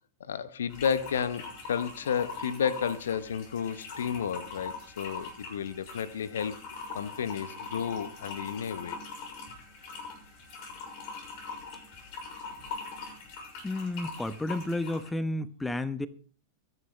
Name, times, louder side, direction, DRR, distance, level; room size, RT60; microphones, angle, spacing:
voice 1, 0.2-6.6 6.9-9.0, left 7 dB, 65° left, 1.0 m, -32 dB
sound 1, 0.7-15.1, left 4 dB, 45° left, 6.4 m, -42 dB
voice 2, 13.6-16.1, left 2 dB, 5° left, 1.0 m, -31 dB
23.5 x 11.0 x 3.3 m
figure-of-eight pair, 90°, 0 cm